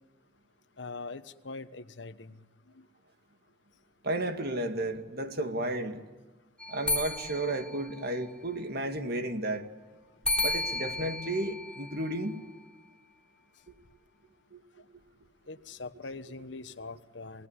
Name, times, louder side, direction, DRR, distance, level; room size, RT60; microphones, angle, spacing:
voice 1, 0.8-2.3 15.5-17.5, left 3 dB, 70° left, 11 dB, 1.1 m, -42 dB
voice 2, 4.0-6.1 6.7-9.7 10.4-12.4 14.5-14.6, right 1 dB, 55° right, 7 dB, 2.2 m, -33 dB
sound 1, 6.6-8.6 10.2-12.6, left 2 dB, 5° left, 3.4 m, -34 dB
28.0 x 19.0 x 9.9 m, 1.3 s
head